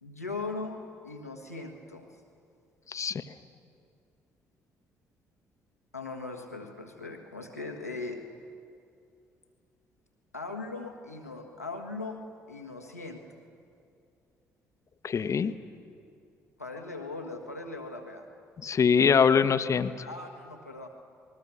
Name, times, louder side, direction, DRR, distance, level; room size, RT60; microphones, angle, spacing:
voice 1, 0.0-2.1 5.9-8.2 10.3-12.2 12.5-13.4 16.6-18.3 20.1-20.9, left 3 dB, 90° left, 2 dB, 1.4 m, -39 dB
voice 2, 2.9-3.2 15.0-15.5 18.6-20.1, left 6 dB, 40° left, 12 dB, 1.0 m, -23 dB
28.0 x 20.5 x 6.9 m, 2.5 s
figure-of-eight pair, 45°, 8 cm